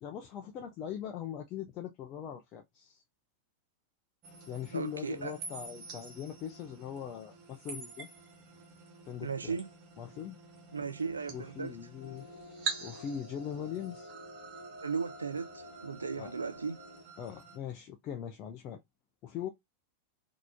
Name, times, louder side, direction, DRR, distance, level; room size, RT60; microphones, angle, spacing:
voice 1, 0.0-3.0 4.5-8.1 9.1-9.6 10.0-10.4 11.3-12.3 12.8-14.1 16.2-16.3 17.2-18.8 19.2-19.5, left 9 dB, 35° left, 0.5 m, -41 dB
sound 1, 4.2-17.6, right 5 dB, 35° right, 1.4 m, -46 dB
voice 2, 4.7-5.4 9.2-9.7 10.7-11.8 14.8-16.8, right 5 dB, 75° right, 0.6 m, -36 dB
sound 2, 12.0-17.0, left 1 dB, 75° left, 0.9 m, -51 dB
4.0 x 2.9 x 2.7 m
figure-of-eight pair, 90°, 0 cm